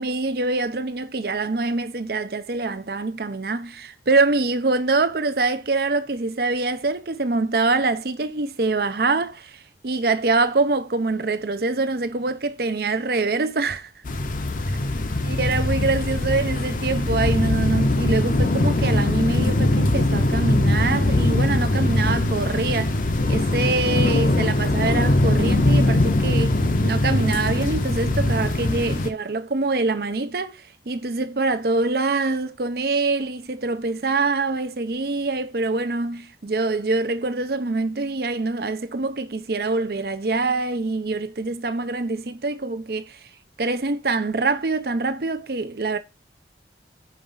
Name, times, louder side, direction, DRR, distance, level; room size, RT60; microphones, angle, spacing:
voice 1, 0.0-13.9 15.2-23.0 23.3-43.2 43.6-46.0, right 3 dB, 55° right, 0.7 m, -24 dB
sound 1, 14.1-29.1, left 1 dB, 45° left, 0.7 m, -21 dB
5.4 x 4.9 x 5.5 m
head